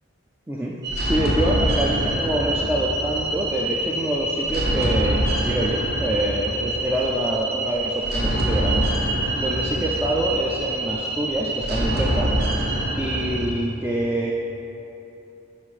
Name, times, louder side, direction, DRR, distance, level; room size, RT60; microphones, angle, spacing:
sound 1, 0.8-13.5, right 1 dB, 50° right, 0.8 m, -25 dB
voice 1, 1.0-5.2 5.4-8.8 9.4-12.3 13.0-14.3, right 1 dB, 10° right, -4 dB, 0.3 m, -26 dB
5.7 x 5.0 x 4.8 m, 2.9 s
head